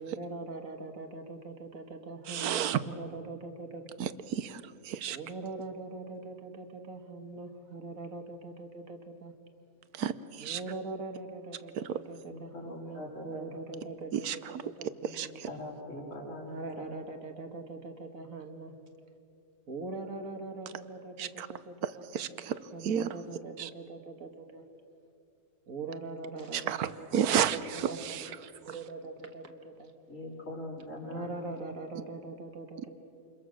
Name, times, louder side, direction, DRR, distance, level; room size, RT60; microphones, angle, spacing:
voice 1, 0.0-4.0 5.1-9.3 10.4-15.4 16.5-18.7 19.7-24.6 25.7-27.4 27.7-28.3 28.7-29.9 30.8-32.9, right 3 dB, 60° right, 5 dB, 2.0 m, -42 dB
voice 2, 2.3-2.8 4.0-5.2 9.9-10.6 11.8-12.0 14.1-14.4 15.0-15.5 21.2-21.5 21.8-22.6 22.8-23.1 23.6-23.7 26.5-28.3, right 9 dB, 75° right, 14 dB, 1.3 m, -32 dB
voice 3, 12.2-13.5 15.5-16.9 30.1-31.5, left 1 dB, 55° left, -2 dB, 3.8 m, -42 dB
28.0 x 22.0 x 6.4 m, 2.7 s
omnidirectional pair, 1.6 m